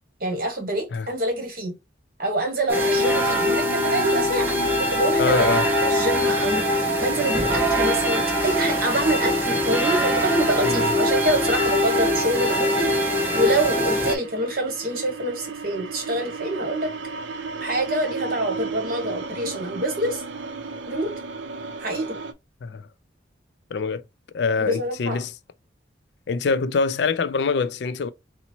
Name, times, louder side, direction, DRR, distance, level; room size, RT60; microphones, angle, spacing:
voice 1, 0.2-1.7 2.2-5.5 5.8-6.6 7.0-16.9 17.6-20.2 20.9-21.1 21.8-22.2 24.6-25.2, right 1 dB, 50° right, 1.2 m, -26 dB
sound 1, 2.7-14.1, equal, 10° right, 0.7 m, -22 dB
sound 2, 2.7-22.3, right 1 dB, 80° right, 0.5 m, -34 dB
voice 2, 5.2-5.7 10.6-10.9 22.6-22.9 23.7-24.0 24.3-25.3 26.3-28.1, left 4 dB, 65° left, 0.4 m, -24 dB
4.0 x 2.0 x 4.4 m
head